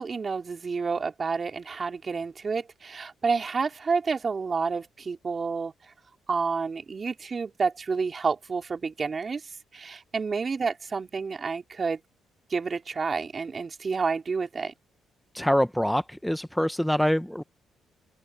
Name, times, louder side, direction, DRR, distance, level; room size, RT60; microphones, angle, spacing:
voice 1, 0.0-5.7 6.3-9.4 9.7-12.0 12.5-14.7, right 5 dB, 35° right, 3.0 m, -29 dB
voice 2, 15.3-17.4, equal, 5° left, 0.7 m, -25 dB
open air
cardioid pair, 90°, 0 cm